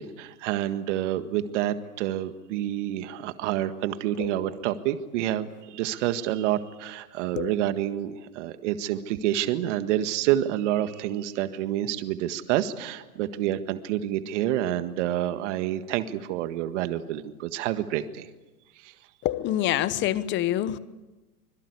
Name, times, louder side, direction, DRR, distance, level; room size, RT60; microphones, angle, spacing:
voice 1, 0.0-18.3 18.8-18.9, right 12 dB, 50° right, 1.8 m, -28 dB
voice 2, 19.2-20.8, left 12 dB, 25° left, 1.0 m, -26 dB
25.5 x 22.0 x 8.3 m
hypercardioid pair, 140°, 45 cm